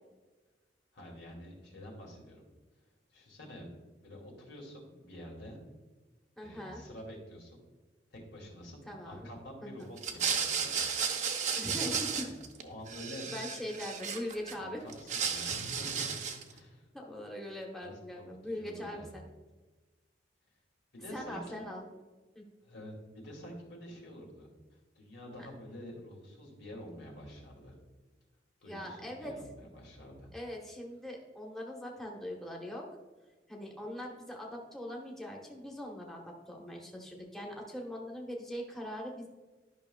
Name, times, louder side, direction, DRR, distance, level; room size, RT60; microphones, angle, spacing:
voice 1, 0.9-2.4 3.1-3.7 4.0-5.6 6.4-7.6 8.1-10.8 12.1-12.3 12.6-13.3 14.6-16.1 16.5-16.9 17.8-19.1 20.9-21.7 22.6-27.7 28.6-30.3, equal, 85° left, -1 dB, 2.3 m, -48 dB
voice 2, 6.4-6.8 8.9-9.3 9.6-9.9 11.6-12.3 13.3-14.8 16.9-19.2 21.1-21.9 22.3-22.4 25.4-25.5 28.6-29.3 30.3-32.9 33.5-39.3, left 1 dB, ahead, -2 dB, 1.0 m, -41 dB
sound 1, 10.0-12.6 12.9-14.5 14.9-16.5, right 6 dB, 40° right, 0.6 m, -34 dB
11.5 x 5.7 x 2.3 m, 1.2 s
head